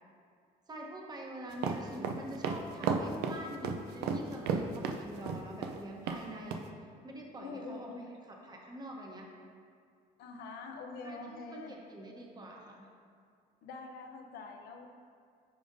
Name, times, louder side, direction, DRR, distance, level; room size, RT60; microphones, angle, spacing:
voice 1, 0.7-6.6 7.0-7.9 8.5-9.2 11.0-12.9, right 1 dB, 25° right, 0 dB, 1.0 m, -45 dB
sound 1, 1.5-5.8 6.1-6.2 6.5-6.6, right 6 dB, 75° right, 0.5 m, -33 dB
voice 2, 7.4-8.1 10.2-11.8 13.6-14.9, left 3 dB, 75° left, 4 dB, 0.7 m, -45 dB
8.9 x 5.1 x 2.6 m, 2.2 s
cardioid pair, 110°, 17 cm